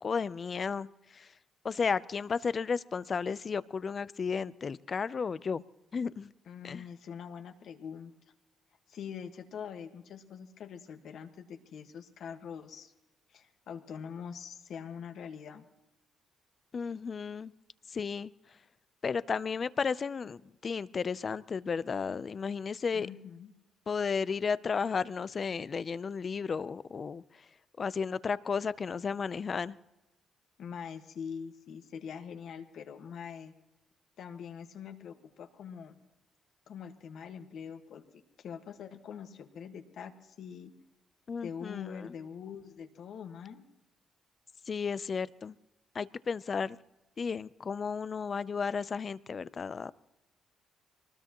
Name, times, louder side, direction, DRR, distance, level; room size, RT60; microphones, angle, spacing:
voice 1, 0.0-1.3 1.6-5.6 5.9-6.3 6.6-6.9 16.7-17.5 17.9-18.3 19.0-23.1 23.9-27.5 27.8-29.8 41.3-42.1 44.7-45.6 45.9-46.8 47.2-49.9, left 5 dB, 40° left, 18 dB, 0.5 m, -33 dB
voice 2, 6.5-8.1 8.9-12.9 13.3-15.7 22.9-23.5 30.6-33.5 34.2-36.0 36.7-38.0 38.4-40.7 41.4-43.6, left 7 dB, 70° left, 6 dB, 1.5 m, -44 dB
23.5 x 20.0 x 3.0 m, 0.98 s
cardioid pair, 90°, 0 cm